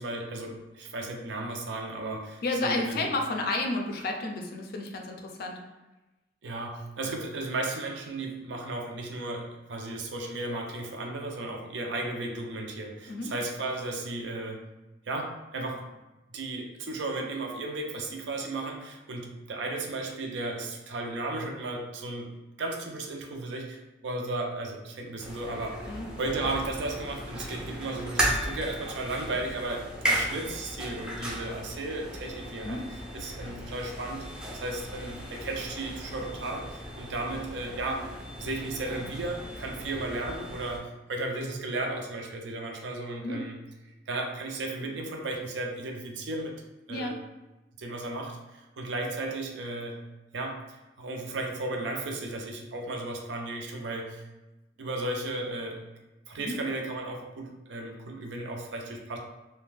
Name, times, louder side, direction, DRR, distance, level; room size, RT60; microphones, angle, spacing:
voice 1, 0.0-3.1 6.4-14.6 15.1-15.8 16.3-22.3 22.6-25.8 26.2-32.8 33.1-34.2 34.6-38.1 38.4-43.6 44.1-46.5 46.9-47.2 47.8-50.0 50.3-54.2 54.8-55.8 56.3-59.2, right 2 dB, 75° right, 2 dB, 0.5 m, -35 dB
voice 2, 2.4-5.6 13.1-13.3 25.9-26.1 32.6-32.8 43.2-43.4 46.9-47.2 56.4-56.6, left 2 dB, 55° left, 3 dB, 0.4 m, -31 dB
sound 1, 25.2-40.8, right 1 dB, 5° right, 0.5 m, -36 dB
2.5 x 2.2 x 3.3 m, 1.0 s
head